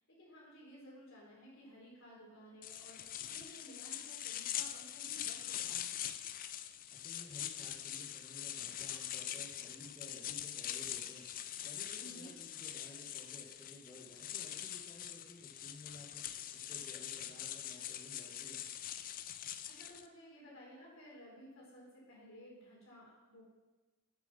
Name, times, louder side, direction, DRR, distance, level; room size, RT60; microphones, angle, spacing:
voice 1, 0.1-3.0 3.3-6.0 11.9-12.3 19.7-23.4, equal, 60° left, -4 dB, 3.8 m, -56 dB
sound 1, 2.6-20.1, left 11 dB, 40° left, 0.4 m, -43 dB
voice 2, 6.9-11.2 11.6-16.2 16.5-18.6, left 1 dB, 20° left, -5 dB, 1.2 m, -55 dB
7.6 x 7.4 x 6.7 m, 1.2 s
head